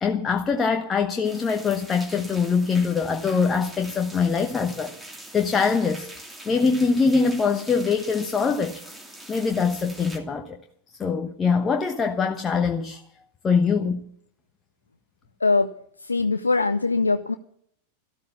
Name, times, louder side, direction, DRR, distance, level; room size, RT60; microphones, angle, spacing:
voice 1, 0.0-4.9 5.3-6.1 6.4-8.8 9.3-10.6 11.0-13.0 13.4-14.1, left 5 dB, 20° left, 1.1 m, -23 dB
sound 1, 1.2-10.2, right 1 dB, 10° right, 2.8 m, -43 dB
voice 2, 15.4-17.3, left 3 dB, 80° left, 0.6 m, -22 dB
14.5 x 13.0 x 7.0 m
figure-of-eight pair, 90°, 0 cm